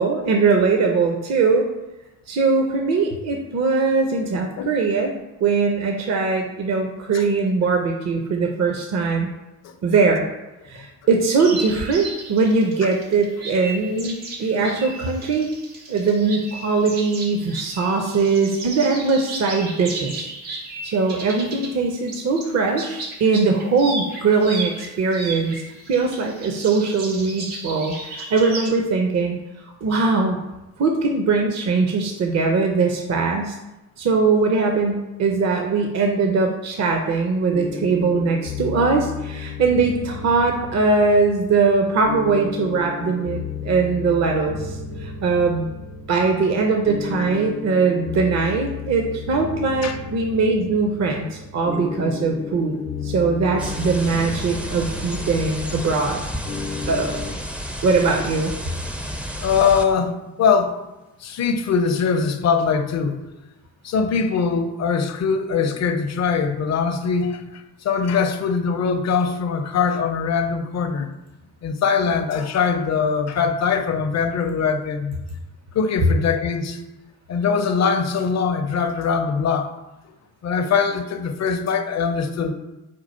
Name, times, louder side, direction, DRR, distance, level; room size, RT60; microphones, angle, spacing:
voice 1, 0.0-1.7 2.3-5.1 5.4-9.3 9.8-10.2 10.7-15.5 15.9-20.3 20.8-29.4 29.8-30.4 30.8-33.6 34.0-45.7 46.1-56.2 56.9-57.2 57.8-58.5, right 4 dB, 40° right, 3 dB, 0.6 m, -21 dB
sound 1, 11.4-21.8 22.1-28.7, right 2 dB, 85° right, 1.0 m, -35 dB
sound 2, 37.5-57.3, left 5 dB, 85° left, 0.7 m, -33 dB
sound 3, 53.6-59.8, equal, 5° right, 0.4 m, -31 dB
voice 2, 59.4-60.8 61.2-63.2 63.8-71.1 71.6-75.2 75.7-76.8 77.3-79.7 80.4-82.5, left 6 dB, 40° left, 8 dB, 0.6 m, -22 dB
4.5 x 2.3 x 4.3 m, 1.0 s
hypercardioid pair, 50°, 40 cm